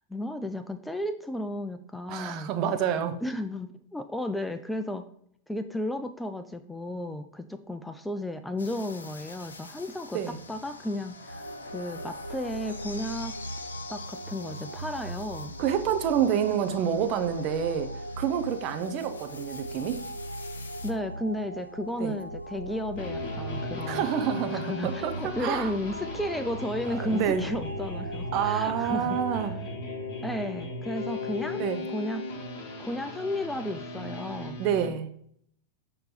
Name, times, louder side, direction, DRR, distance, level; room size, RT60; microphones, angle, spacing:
voice 1, 0.0-2.5 3.2-5.0 5.5-10.2 10.5-13.4 13.9-15.6 20.8-24.0 24.5-29.5 30.2-31.6 31.9-32.3 32.8-34.6, left 1 dB, 5° left, 9 dB, 0.3 m, -33 dB
voice 2, 2.1-3.2 10.1-10.4 15.6-20.0 22.0-22.2 23.8-25.7 27.0-27.4 28.3-29.5 31.6-31.8 34.6-35.1, right 8 dB, 40° right, 8 dB, 0.6 m, -28 dB
sound 1, 8.6-20.9, left 4 dB, 70° left, 0.5 m, -46 dB
sound 2, 11.3-29.5, right 1 dB, 85° right, 0.3 m, -39 dB
sound 3, 22.9-34.9, left 2 dB, 40° left, 1.3 m, -37 dB
6.5 x 3.0 x 5.0 m, 0.67 s
figure-of-eight pair, 90°, 0 cm